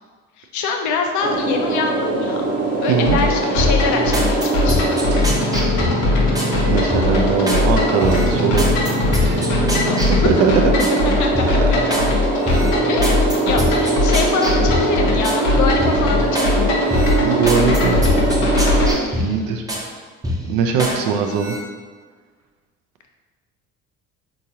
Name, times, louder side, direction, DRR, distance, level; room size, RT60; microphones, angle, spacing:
voice 1, 0.4-2.4 2.8-4.8 9.8-10.3 11.2-11.8 12.9-16.8 19.0-19.5 20.9-21.1, left 4 dB, 50° left, 3 dB, 0.6 m, -25 dB
sound 1, 1.2-19.0, right 2 dB, 40° right, 0.9 m, -21 dB
voice 2, 2.9-3.2 6.7-8.9 9.2-9.5 10.2-10.5 11.6-11.7 17.2-18.0 19.2-19.6 20.5-21.6, right 6 dB, 60° right, 4 dB, 0.5 m, -20 dB
sound 2, 3.1-18.9, left 3 dB, 80° left, 0.8 m, -21 dB
sound 3, 3.6-6.5 6.9-7.6 8.0-11.0 11.4-12.1 12.4-15.4 15.8-16.5 16.9-19.9 20.2-21.0 21.3-21.6, equal, 10° right, 0.7 m, -26 dB
3.6 x 2.9 x 2.8 m, 1.5 s
hypercardioid pair, 65°, 38 cm